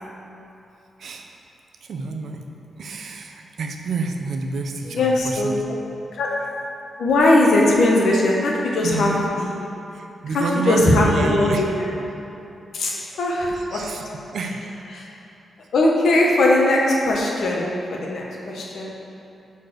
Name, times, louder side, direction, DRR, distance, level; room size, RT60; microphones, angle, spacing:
voice 1, 1.0-1.4 1.8-2.5 2.8-5.6 8.8-9.2 9.9-11.7 13.5-14.0 14.3-14.6, right 4 dB, 60° right, 4 dB, 0.6 m, -28 dB
voice 2, 4.8-5.5 6.2-6.3 7.0-9.5 10.3-11.9 12.7-13.9 14.9-15.1 15.7-19.0, left 2 dB, 70° left, -2 dB, 1.1 m, -20 dB
6.6 x 4.1 x 6.2 m, 2.8 s
wide cardioid pair, 165°, 0 cm